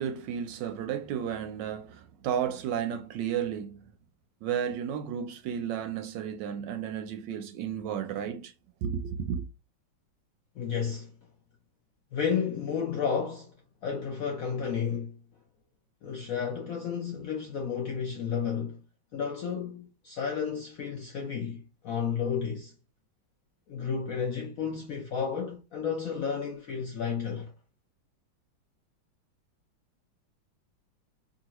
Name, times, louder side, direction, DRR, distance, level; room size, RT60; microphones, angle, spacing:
voice 1, 0.0-3.8 4.4-8.5 8.8-9.4, right 8 dB, 75° right, 1.2 m, -33 dB
voice 2, 10.6-11.1 12.1-13.5 13.8-15.2 16.0-18.8 19.1-22.7 23.7-27.5, left 6 dB, 70° left, 0.8 m, -32 dB
3.8 x 2.6 x 2.9 m
omnidirectional pair, 2.1 m